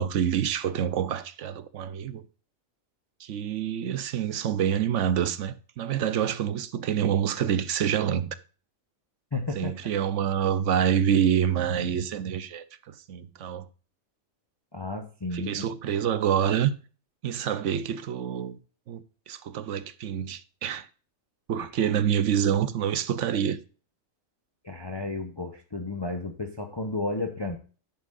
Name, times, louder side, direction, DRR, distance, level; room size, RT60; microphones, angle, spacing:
voice 1, 0.0-2.2 3.2-8.4 9.6-13.7 15.3-16.7 17.2-18.6 18.9-20.9 21.5-23.6, right 9 dB, 65° right, 1.0 m, -27 dB
voice 2, 9.3-9.7 14.7-15.7 24.6-27.6, left 2 dB, 25° left, 0.8 m, -32 dB
10.5 x 8.2 x 2.5 m
omnidirectional pair, 1.4 m